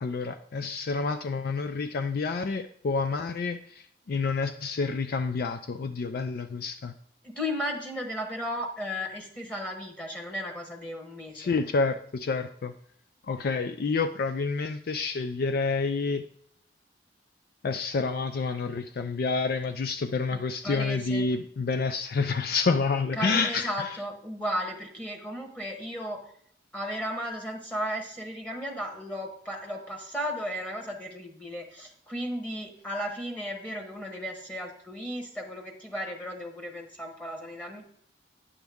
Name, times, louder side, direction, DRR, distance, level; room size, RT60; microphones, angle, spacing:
voice 1, 0.0-3.6 4.1-6.9 11.4-12.7 13.3-16.2 17.6-23.7, left 4 dB, 55° left, 9 dB, 0.4 m, -28 dB
voice 2, 7.2-11.6 20.3-21.3 23.1-26.3 26.7-37.8, equal, 5° left, 2 dB, 1.1 m, -35 dB
9.3 x 7.2 x 3.5 m, 0.66 s
head